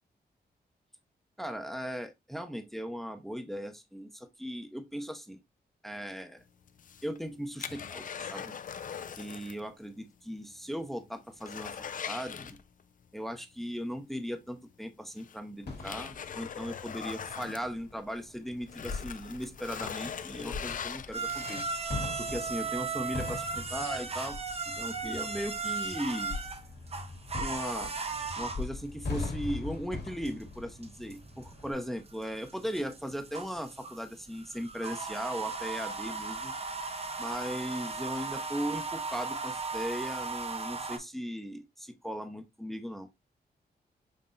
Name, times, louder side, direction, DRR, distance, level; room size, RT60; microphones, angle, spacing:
voice 1, 1.4-5.4 5.8-6.4 7.0-8.5 9.2-11.7 12.1-12.6 13.1-21.7 22.2-24.4 24.7-26.3 27.4-27.9 28.4-36.5 37.2-43.1, equal, ahead, 0.7 m, -38 dB
sound 1, 6.7-9.7 9.9-10.0 10.5-10.6 11.0-13.0 14.4-14.5 15.2-18.3 18.6-22.0 22.5-22.6, left 7 dB, 50° left, 0.4 m, -41 dB
sound 2, 15.6-17.0 17.3-31.7, left 3 dB, 70° left, 1.7 m, -41 dB
sound 3, 21.1-41.0, right 4 dB, 35° right, 0.7 m, -37 dB
5.6 x 2.8 x 2.5 m
cardioid pair, 80°, 17 cm